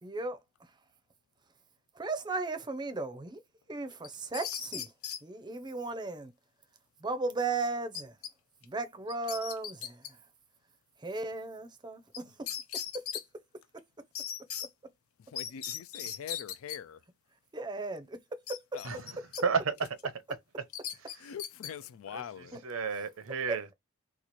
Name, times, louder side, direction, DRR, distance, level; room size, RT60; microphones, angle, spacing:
voice 1, 0.0-0.4 1.9-3.4 3.7-4.9 5.2-6.3 7.0-8.1 8.6-10.0 11.0-12.4 12.9-13.0 17.5-18.2 18.5-18.6 22.5-22.6 23.5-23.6, right 3 dB, 20° right, 0.5 m, -35 dB
sound 1, 4.0-5.2 7.9-8.3 8.6-8.7 9.1-10.1 12.1-12.2 12.5-13.2 14.2-14.7 15.4-16.8 18.5-19.4 19.8-20.0 20.7-21.7, left 9 dB, 90° left, 0.7 m, -38 dB
voice 2, 15.2-17.0 18.7-19.0 21.2-22.6, left 8 dB, 70° left, 0.3 m, -44 dB
voice 3, 18.8-19.7 22.1-22.2 22.6-23.7, right 5 dB, 65° right, 0.7 m, -32 dB
3.0 x 2.4 x 4.0 m
head